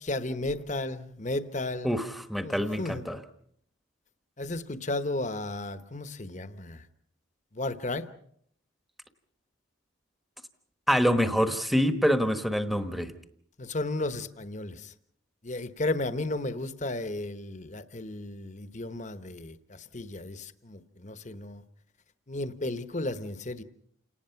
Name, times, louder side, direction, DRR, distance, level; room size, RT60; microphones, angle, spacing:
voice 1, 0.0-2.0 2.4-3.0 4.4-6.8 7.6-8.0 13.6-14.8 15.4-19.5 19.9-21.6 22.3-23.6, left 2 dB, 35° left, 1.1 m, -33 dB
voice 2, 1.8-3.2 10.9-13.1, equal, ahead, 1.2 m, -26 dB
29.0 x 19.0 x 5.8 m
head